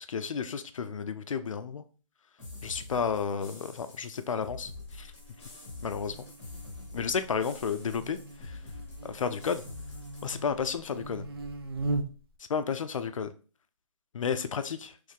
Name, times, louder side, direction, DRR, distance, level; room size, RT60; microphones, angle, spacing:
voice 1, 0.1-1.8 2.6-5.1 5.8-6.1 6.9-8.6 9.0-9.6 10.2-11.3 12.5-13.3 14.1-14.9, left 6 dB, 75° left, 0.4 m, -32 dB
sound 1, 2.4-10.4, left 2 dB, 20° left, 1.5 m, -46 dB
Buzz, 4.6-12.4, right 2 dB, 45° right, 0.5 m, -40 dB
3.1 x 2.6 x 3.6 m
hypercardioid pair, 165°, 17 cm